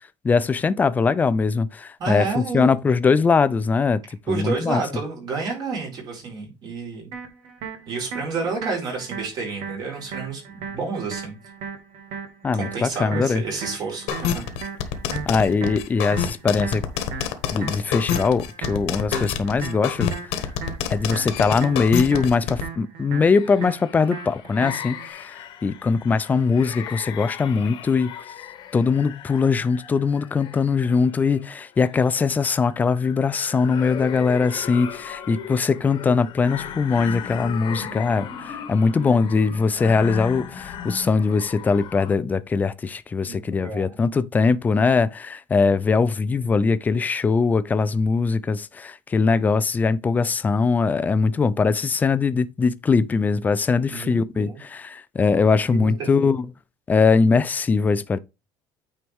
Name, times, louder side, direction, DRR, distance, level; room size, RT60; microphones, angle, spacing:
voice 1, 0.2-4.0 4.3-4.8 12.4-13.4 15.3-16.8 17.5-20.1 20.3-20.5 20.9-28.2 28.7-56.4 56.9-58.2, left 4 dB, 15° left, 0.4 m, -21 dB
voice 2, 2.0-2.7 4.3-7.1 7.9-11.4 12.5-14.4 43.3-44.0 53.9-54.6 55.7-56.1, right 4 dB, 40° right, 4.3 m, -30 dB
sound 1, 7.1-25.1, right 6 dB, 75° right, 2.0 m, -37 dB
sound 2, 14.1-22.6, left 9 dB, 75° left, 1.4 m, -26 dB
sound 3, 23.3-42.1, left 8 dB, 50° left, 1.3 m, -37 dB
9.2 x 4.6 x 3.5 m
cardioid pair, 155°, 10 cm